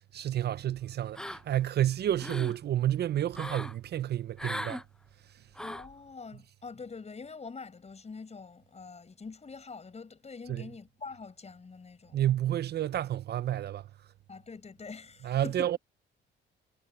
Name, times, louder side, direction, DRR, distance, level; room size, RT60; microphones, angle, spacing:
voice 1, 0.1-4.8 10.5-10.6 12.1-13.9 15.2-15.8, right 12 dB, 55° right, 0.5 m, -30 dB
sound 1, 1.1-1.7 2.0-2.6 3.3-3.7 4.4-4.8 5.5-5.9, left 1 dB, 5° left, 0.6 m, -38 dB
voice 2, 5.6-12.2 14.3-15.7, left 4 dB, 35° left, 6.5 m, -45 dB
cardioid pair, 90°, 20 cm